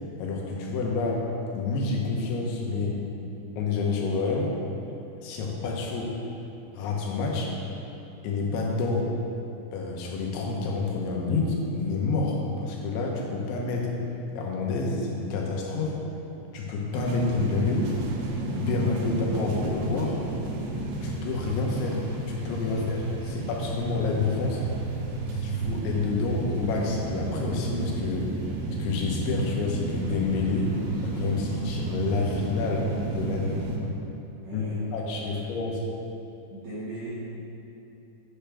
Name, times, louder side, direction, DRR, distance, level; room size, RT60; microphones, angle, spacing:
voice 1, 0.2-1.3 1.5-3.0 3.6-4.5 5.2-6.1 6.7-7.5 8.2-9.1 9.7-13.9 14.3-16.0 16.5-17.9 18.5-20.2 21.0-24.6 25.3-28.3 28.8-33.5 33.8-33.9 34.5-35.8, left 3 dB, 90° left, -1 dB, 3.3 m, -28 dB
sound 1, 16.9-33.8, right 2 dB, 90° right, 3.2 m, -32 dB
voice 2, 23.2-23.6 33.3-33.6 34.4-34.8 35.2-35.4 36.5-37.1, right 2 dB, 65° right, -10 dB, 2.1 m, -39 dB
8.7 x 3.4 x 6.7 m, 2.9 s
omnidirectional pair, 5.2 m